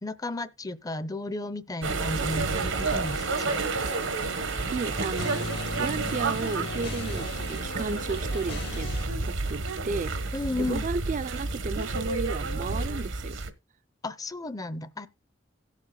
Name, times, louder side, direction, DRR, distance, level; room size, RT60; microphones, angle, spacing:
voice 1, 0.0-3.6 10.3-10.9 14.0-15.1, left 2 dB, 20° left, 0.6 m, -33 dB
sound 1, 1.8-13.5, right 3 dB, 90° right, 1.1 m, -30 dB
sound 2, 2.3-9.1, left 2 dB, 60° left, 1.5 m, -38 dB
voice 2, 4.7-5.5 5.8-8.9 9.3-13.4, right 4 dB, 40° right, 0.4 m, -33 dB
17.5 x 7.4 x 2.2 m
head